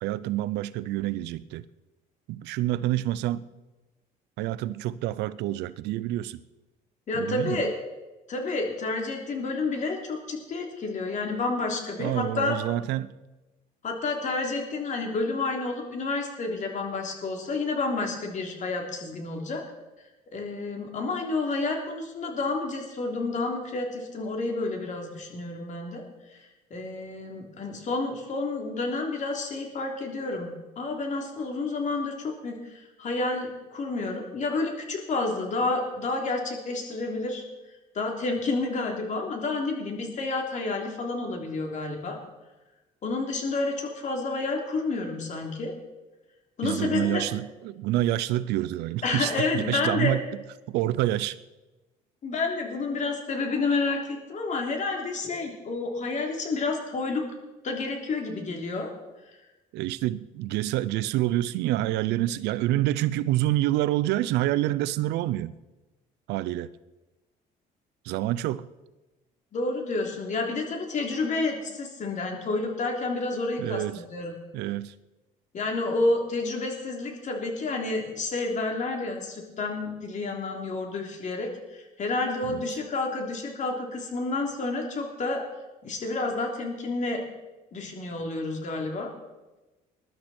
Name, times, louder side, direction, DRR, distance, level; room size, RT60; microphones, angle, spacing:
voice 1, 0.0-1.6 2.3-3.4 4.4-6.4 7.1-7.6 12.0-13.2 46.6-50.2 50.7-51.4 59.7-65.5 66.3-66.7 68.1-68.7 73.6-74.0 74.5-74.9 82.5-82.6, right 15 dB, 90° right, 0.6 m, -27 dB
voice 2, 7.1-7.7 8.3-12.6 13.8-19.6 20.3-26.0 26.3-37.4 37.9-42.2 43.0-45.7 46.6-47.2 49.0-50.1 52.2-57.2 57.6-58.9 69.5-74.4 75.5-85.4 85.8-87.2 87.7-89.1, left 3 dB, 45° left, 3.5 m, -30 dB
21.0 x 12.0 x 4.4 m
cardioid pair, 110°, 17 cm